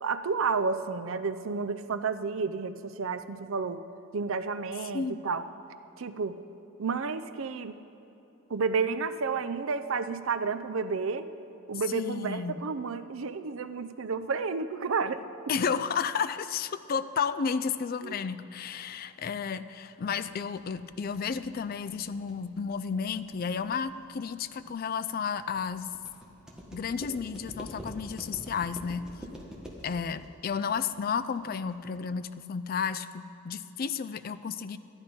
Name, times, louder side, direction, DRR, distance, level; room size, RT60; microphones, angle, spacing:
voice 1, 0.0-3.8 4.1-5.4 6.0-6.4 6.8-7.8 8.5-11.3 11.7-15.2 18.0-18.2, right 5 dB, 70° right, 10 dB, 0.6 m, -31 dB
voice 2, 11.9-12.6 15.5-25.9 26.7-29.1 29.8-34.8, left 6 dB, 45° left, 13 dB, 0.4 m, -32 dB
sound 1, 20.1-32.1, equal, 5° right, 1.4 m, -46 dB
13.0 x 10.5 x 5.2 m, 3.0 s
head